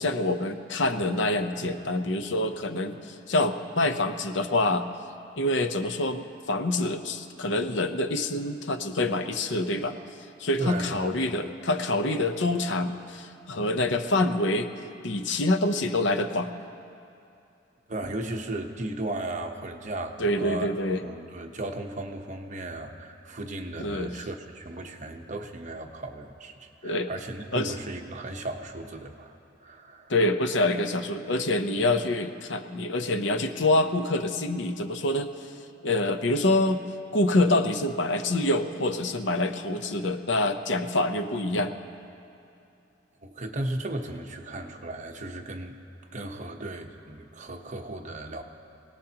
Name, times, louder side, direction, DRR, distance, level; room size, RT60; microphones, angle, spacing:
voice 1, 0.0-4.9 5.4-10.0 10.4-14.7 15.0-16.5 20.2-21.0 23.8-24.1 26.8-27.1 27.5-27.7 30.1-35.3 35.8-36.8 37.1-41.8, left 2 dB, 65° left, 8 dB, 0.8 m, -26 dB
voice 2, 10.6-11.3 17.9-20.7 21.0-29.3 29.6-30.1 43.2-45.8 46.1-48.4, right 2 dB, 40° right, 3 dB, 1.0 m, -36 dB
25.0 x 18.0 x 2.9 m, 2.6 s
head